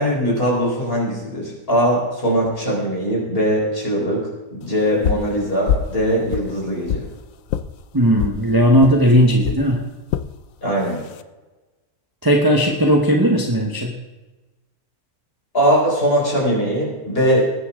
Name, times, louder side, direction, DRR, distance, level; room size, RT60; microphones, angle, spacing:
voice 1, 0.0-7.0 10.6-11.0 15.5-17.5, equal, 35° left, -3 dB, 5.2 m, -20 dB
sound 1, 5.0-5.3 5.7-6.0 6.3-7.1 7.5-7.7 8.2-8.4 8.8-9.0 9.4-9.6 10.1-10.3 10.9-11.2, left 8 dB, 65° left, 1.0 m, -23 dB
voice 2, 7.9-9.9 12.2-13.9, equal, 15° right, 2 dB, 1.2 m, -16 dB
20.0 x 9.9 x 3.8 m, 1.2 s
omnidirectional pair, 1.6 m